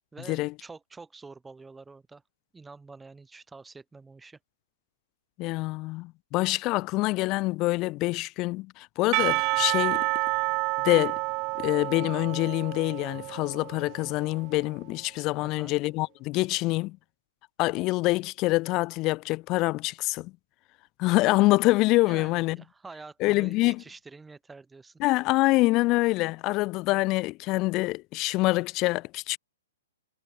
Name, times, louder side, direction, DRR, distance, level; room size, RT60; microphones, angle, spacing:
voice 1, 0.1-2.2 2.5-4.4 15.4-15.7 22.1-25.0, right 4 dB, 10° right, 1.5 m, -47 dB
voice 2, 5.4-10.1 10.8-11.2 11.6-17.0 17.6-20.3 21.0-22.6 23.2-23.8 25.0-29.4, left 21 dB, 30° left, 0.4 m, -25 dB
Percussion / Church bell, 9.1-14.4, right 26 dB, 35° right, 0.3 m, -29 dB
hypercardioid pair, 135°, 0 cm